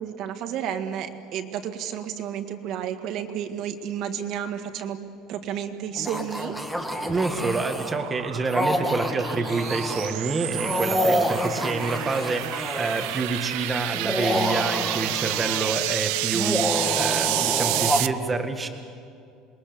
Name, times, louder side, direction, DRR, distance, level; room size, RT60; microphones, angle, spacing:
voice 1, 0.0-5.0 5.3-6.6, right 9 dB, 50° right, 7 dB, 1.8 m, -31 dB
sound 1, 6.0-7.9 8.5-10.1 10.5-13.2 13.9-15.8 16.3-18.0, equal, ahead, 1.8 m, -28 dB
sound 2, 6.5-18.1, right 18 dB, 80° right, 0.6 m, -30 dB
voice 2, 7.1-18.7, right 3 dB, 15° right, 5 dB, 1.9 m, -28 dB
27.5 x 22.0 x 7.0 m, 2.4 s
cardioid pair, 155°, 0 cm